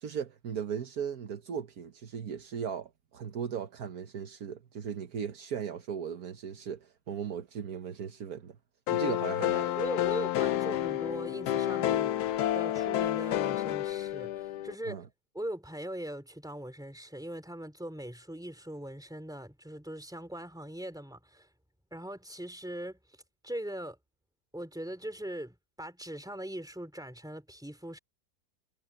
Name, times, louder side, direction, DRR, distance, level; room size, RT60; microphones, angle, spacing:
voice 1, 0.0-8.6 8.9-9.7 14.9-15.1, right 7 dB, 70° right, 1.5 m, -37 dB
sound 1, 8.9-14.8, left 13 dB, 80° left, 1.2 m, -30 dB
voice 2, 9.4-12.1 12.5-15.0 15.3-21.5 21.9-23.0 23.4-24.0 24.5-28.0, right 1 dB, ahead, 3.1 m, -40 dB
omnidirectional pair, 1.7 m